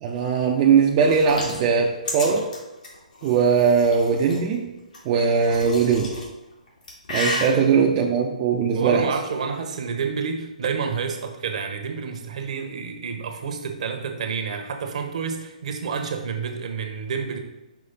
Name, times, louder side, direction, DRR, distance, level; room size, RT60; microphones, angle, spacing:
voice 1, 0.0-2.5 3.2-4.7 5.0-6.2 7.1-9.1, right 6 dB, 30° right, -1 dB, 0.5 m, -20 dB
sound 1, 1.0-4.4 4.9-6.3 6.7-7.5, left 2 dB, 70° left, 2.1 m, -32 dB
voice 2, 7.5-7.9 8.7-17.4, right 5 dB, 55° right, 5 dB, 0.9 m, -29 dB
5.8 x 3.2 x 5.3 m, 0.99 s
hypercardioid pair, 140°, 4 cm